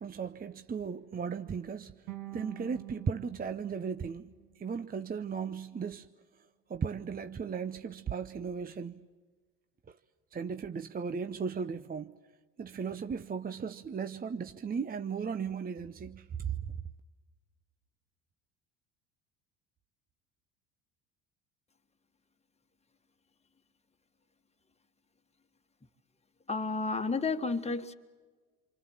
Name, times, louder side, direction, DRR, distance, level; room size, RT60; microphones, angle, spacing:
voice 1, 0.0-2.0 2.3-4.3 4.6-6.1 6.7-9.0 10.3-12.1 12.6-16.5, right 6 dB, 25° right, 0.8 m, -36 dB
sound 1, 2.1-5.2, right 16 dB, 65° right, 1.7 m, -47 dB
voice 2, 26.5-27.9, left 3 dB, 15° left, 1.7 m, -31 dB
27.5 x 25.0 x 7.3 m
hypercardioid pair, 70°, 39 cm